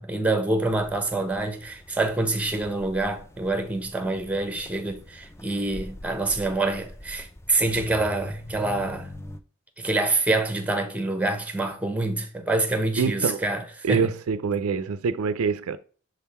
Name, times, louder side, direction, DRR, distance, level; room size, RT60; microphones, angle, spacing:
voice 1, 0.0-9.1 9.8-14.1, right 2 dB, 5° right, 0.8 m, -26 dB
sound 1, 0.7-9.4, left 1 dB, 10° left, 0.4 m, -43 dB
voice 2, 13.0-13.5 13.8-15.8, right 5 dB, 70° right, 0.4 m, -25 dB
6.2 x 3.7 x 4.2 m
head